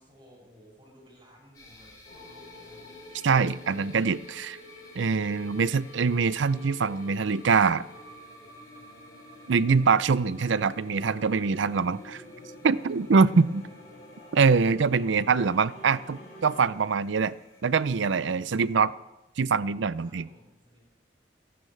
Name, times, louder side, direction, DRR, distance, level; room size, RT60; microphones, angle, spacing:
voice 1, 0.0-2.8 12.7-14.0 16.8-16.9 20.0-20.8, equal, 25° right, -5 dB, 7.3 m, -56 dB
sound 1, 1.5-18.8, left 2 dB, 20° left, 3.6 m, -56 dB
sound 2, 2.0-16.7, left 1 dB, 40° left, 6.2 m, -48 dB
voice 2, 3.2-4.6 5.0-7.8 9.5-12.2 12.6-13.6 14.3-17.3 17.6-18.9 19.4-20.3, right 5 dB, 70° right, 17 dB, 0.5 m, -24 dB
28.5 x 11.0 x 3.3 m, 0.96 s
head